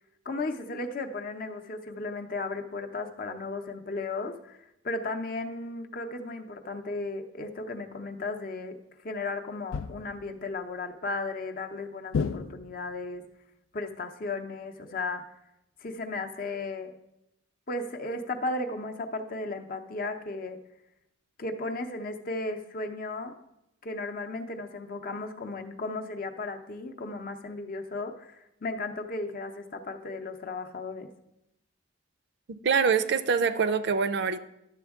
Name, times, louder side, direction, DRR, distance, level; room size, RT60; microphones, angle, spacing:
voice 1, 0.2-8.8 9.0-13.3 13.7-15.2 15.8-16.9 17.7-20.6 21.4-23.3 23.8-31.1, left 3 dB, 45° left, 5 dB, 0.7 m, -35 dB
sound 1, 9.7-10.3 12.1-13.0, left 5 dB, 90° left, 0.3 m, -32 dB
voice 2, 32.5-34.4, right 5 dB, 55° right, 12 dB, 0.4 m, -25 dB
11.5 x 7.0 x 3.6 m, 0.87 s
head